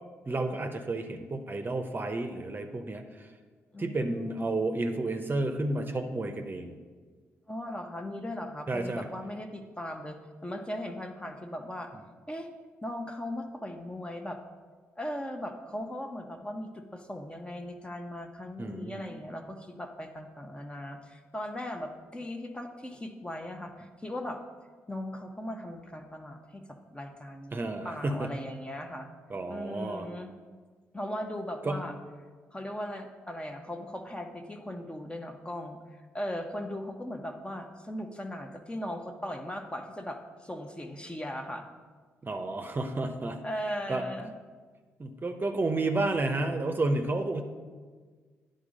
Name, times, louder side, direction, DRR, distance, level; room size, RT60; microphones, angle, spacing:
voice 1, 0.3-3.3 3.8-6.8 8.7-9.1 18.6-19.0 27.5-28.3 29.3-30.1 31.6-31.8 42.2-43.4 43.9-44.0 45.0-47.4, right 2 dB, 30° right, 6 dB, 0.8 m, -31 dB
voice 2, 3.7-4.5 7.5-10.2 10.4-11.9 12.3-12.5 12.8-14.4 15.0-24.4 24.9-26.6 26.9-29.1 29.5-30.3 30.9-31.9 32.5-35.8 36.1-41.6 43.4-44.3, left 1 dB, 15° left, 4 dB, 1.0 m, -38 dB
9.8 x 4.0 x 5.2 m, 1.5 s
hypercardioid pair, 45°, 7 cm